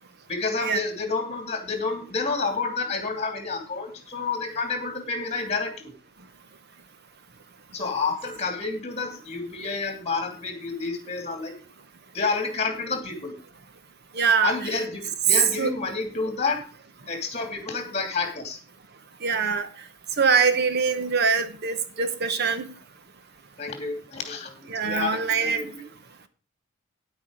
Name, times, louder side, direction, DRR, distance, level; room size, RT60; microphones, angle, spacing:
voice 1, 0.3-5.9 7.7-11.5 12.1-13.3 14.4-16.6 17.1-18.6 23.6-25.9, left 4 dB, 35° left, 2.7 m, -29 dB
voice 2, 14.1-14.5 15.6-15.7 19.2-19.7 20.2-22.6 24.7-25.6, right 5 dB, 55° right, 0.9 m, -23 dB
10.0 x 8.6 x 5.1 m
head